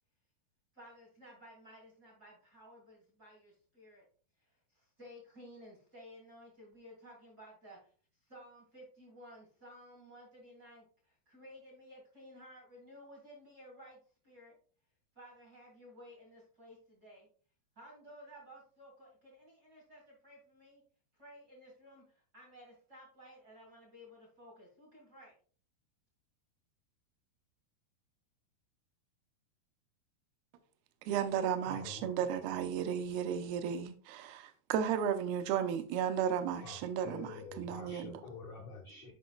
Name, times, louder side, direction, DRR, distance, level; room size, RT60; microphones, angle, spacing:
voice 1, 0.7-4.0 4.4-7.8 8.3-14.0 14.2-14.5 15.1-17.3 17.7-20.8 21.1-25.3, equal, 55° right, 1.1 m, -55 dB
voice 2, 31.1-38.2, right 8 dB, 80° right, 2.3 m, -34 dB
voice 3, 31.7-32.0 32.8-32.9 36.6-39.1, left 4 dB, 80° left, 1.6 m, -48 dB
10.5 x 5.2 x 2.3 m
omnidirectional pair, 4.9 m